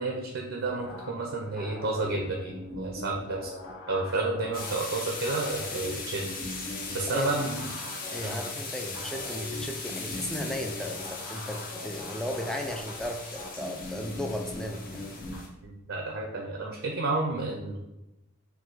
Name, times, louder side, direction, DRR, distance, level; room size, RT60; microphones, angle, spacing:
voice 1, 0.0-3.5 3.9-6.3 6.9-7.7 8.2-8.4 15.6-17.9, right 3 dB, 65° right, 0 dB, 0.6 m, -31 dB
sound 1, 0.6-15.4, left 1 dB, 70° left, 1.3 m, -42 dB
sound 2, 4.5-15.5, left 4 dB, 45° left, 0.9 m, -39 dB
voice 2, 7.1-7.4 8.1-15.1, left 1 dB, 5° left, 3 dB, 0.4 m, -35 dB
4.6 x 2.3 x 3.9 m, 0.97 s
head